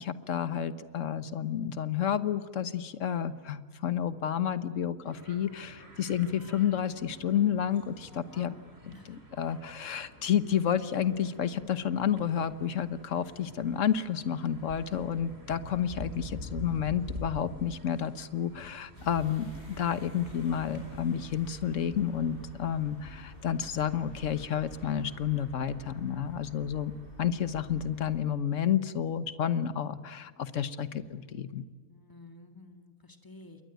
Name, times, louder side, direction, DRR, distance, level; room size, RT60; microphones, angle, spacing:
voice 1, 0.0-8.5 9.1-26.9 27.2-31.7, left 9 dB, 65° left, 13 dB, 1.3 m, -30 dB
sound 1, 5.0-21.1, equal, 45° right, 4.6 m, -47 dB
voice 2, 8.1-8.6 8.9-9.2 31.9-33.6, left 2 dB, 15° left, 6 dB, 1.9 m, -51 dB
sound 2, 18.9-28.2, equal, 40° left, 6.3 m, -49 dB
28.0 x 22.0 x 9.2 m, 1.5 s
omnidirectional pair, 1.4 m